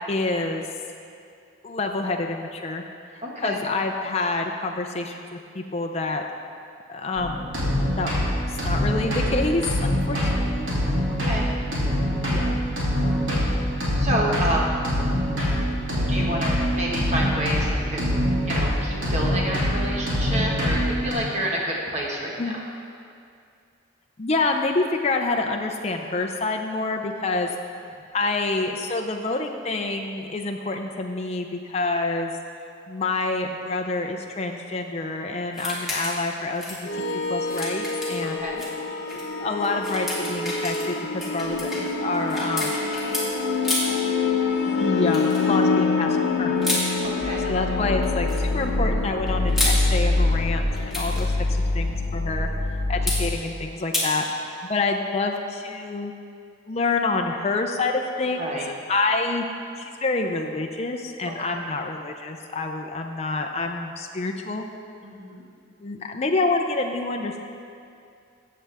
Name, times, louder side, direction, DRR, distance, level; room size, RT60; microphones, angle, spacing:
voice 1, 0.1-0.7 1.6-2.8 3.4-6.2 6.9-7.5 8.0-8.1 8.5-10.7 12.3-12.6 15.5-15.6 22.4-22.5 24.2-27.5 28.1-32.3 32.9-36.6 37.3-38.4 39.4-42.8 44.7-46.8 47.5-51.5 51.7-52.5 52.9-56.1 56.7-58.6 58.9-59.5 59.8-64.6 65.8-67.4, left 3 dB, 30° left, 3 dB, 0.5 m, -27 dB
voice 2, 3.2-3.6 11.2-11.5 13.9-14.8 16.1-22.6 38.4-38.6 47.0-47.5 58.3-58.7 61.2-61.6 65.0-65.4, right 1 dB, 35° right, -3 dB, 1.4 m, -29 dB
sound 1, 7.2-21.1, equal, 65° right, 2.8 m, -24 dB
sound 2, 35.5-36.3 36.5-38.7 39.1-39.2 39.6-43.3 43.6-44.0 45.1-45.4 46.6-46.8 48.0-48.4 49.3-49.8 50.7-51.2 53.1-53.2 53.9-54.1, left 1 dB, ahead, 1.6 m, -30 dB
sound 3, 36.8-53.4, left 3 dB, 55° left, 1.0 m, -25 dB
14.5 x 7.6 x 3.4 m, 2.4 s
head